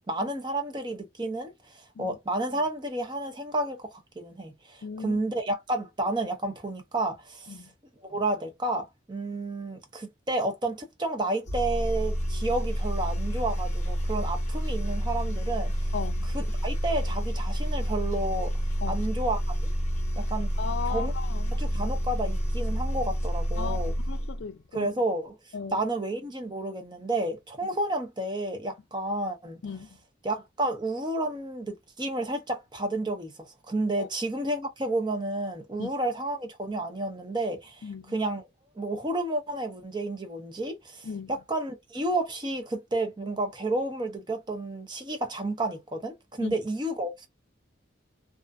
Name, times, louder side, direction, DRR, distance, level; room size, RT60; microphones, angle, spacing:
voice 1, 0.1-7.6 8.0-15.9 16.3-18.5 18.9-19.7 20.2-20.5 20.9-21.1 21.5-23.9 24.7-25.3 25.7-29.6 30.2-38.5 38.8-47.3, right 2 dB, 25° right, 0.6 m, -31 dB
voice 2, 4.8-5.2 7.5-7.7 15.9-16.3 18.8-19.0 20.6-21.6 23.6-24.9 25.5-25.8 29.6-29.9 34.0-34.1 35.8-35.9 37.8-38.2 41.0-41.3 46.4-46.6, left 6 dB, 65° left, 0.4 m, -36 dB
sound 1, 11.4-24.4, equal, 40° left, 0.8 m, -29 dB
2.4 x 2.4 x 2.2 m
head